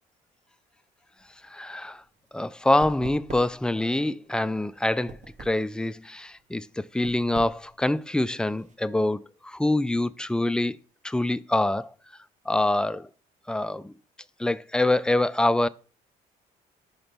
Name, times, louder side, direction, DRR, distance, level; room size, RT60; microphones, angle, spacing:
sound 1, 1.2-8.7, right 3 dB, 45° right, 1.2 m, -45 dB
voice 1, 1.5-2.0 2.3-10.8 11.0-11.9 12.5-13.1 13.5-13.9 14.4-15.7, left 1 dB, 5° left, 0.4 m, -25 dB
5.8 x 3.9 x 5.2 m
supercardioid pair, 75°, 17 cm